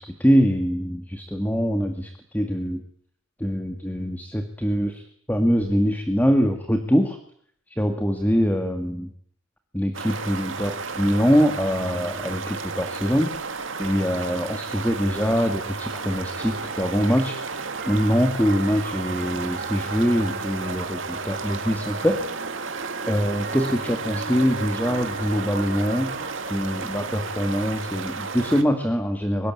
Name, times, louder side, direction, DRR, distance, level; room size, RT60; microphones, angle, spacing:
voice 1, 0.0-2.8 3.4-7.2 7.8-9.1 9.7-22.2 23.1-26.1 26.5-29.5, equal, 10° left, 6 dB, 2.1 m, -23 dB
sound 1, 9.9-28.6, right 4 dB, 75° right, 2.4 m, -33 dB
sound 2, 16.4-27.7, right 3 dB, 45° right, 1.7 m, -38 dB
24.0 x 22.5 x 8.8 m, 0.64 s
head